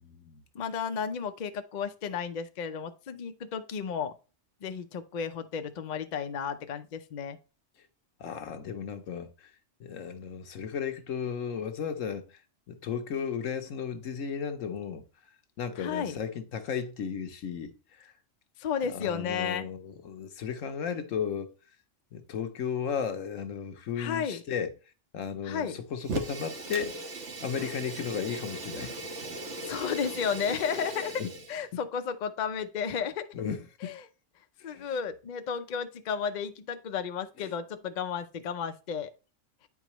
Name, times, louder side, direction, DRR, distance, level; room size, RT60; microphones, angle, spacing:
voice 1, 0.5-4.1 4.6-7.4 15.8-16.2 18.6-19.7 24.0-24.4 25.4-25.8 29.6-31.2 31.5-33.2 33.8-34.1 34.6-39.1, left 7 dB, 50° left, 0.6 m, -33 dB
voice 2, 8.2-9.5 9.8-12.2 12.7-15.0 15.6-18.1 18.9-21.5 22.1-24.7 25.1-26.9 27.4-28.9 31.2-31.3 33.3-34.0 34.6-34.9 37.4-37.5, left 7 dB, 80° left, 1.2 m, -34 dB
Fire, 26.0-31.6, right 2 dB, 65° right, 1.4 m, -38 dB
9.2 x 4.8 x 3.0 m
omnidirectional pair, 1.3 m